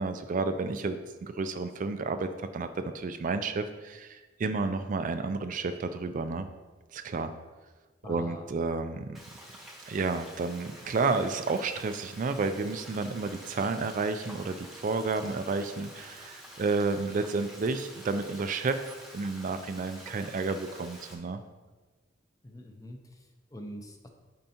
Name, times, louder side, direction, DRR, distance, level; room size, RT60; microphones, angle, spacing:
voice 1, 0.0-6.5 6.9-7.3 8.1-9.2 9.9-18.8 19.1-21.4, right 4 dB, 45° right, 9 dB, 0.4 m, -31 dB
voice 2, 8.0-8.5 22.4-24.1, equal, 20° left, 3 dB, 0.7 m, -44 dB
Frying (food), 9.1-21.1, equal, ahead, 1.1 m, -48 dB
8.9 x 5.3 x 2.9 m, 1.3 s
head